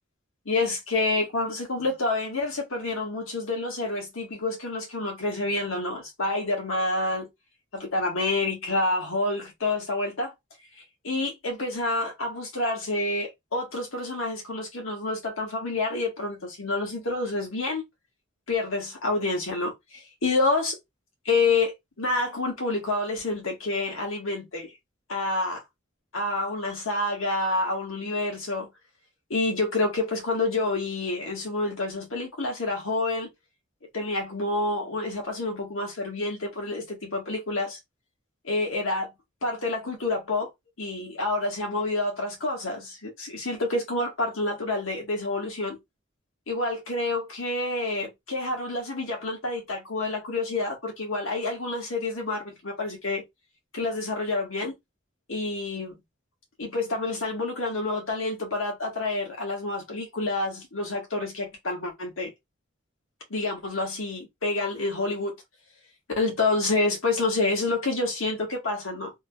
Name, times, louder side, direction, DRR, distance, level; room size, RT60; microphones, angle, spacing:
voice 1, 0.4-7.3 7.7-10.3 10.8-17.8 18.5-20.8 21.2-24.7 25.1-25.6 26.1-28.7 29.3-33.3 33.9-37.8 38.4-39.1 39.4-40.5 40.8-45.8 46.5-53.2 53.7-54.7 55.3-56.0 56.6-62.3 63.3-65.3 66.2-69.1, left 2 dB, 85° left, 1.4 m, -28 dB
3.4 x 2.9 x 2.3 m
head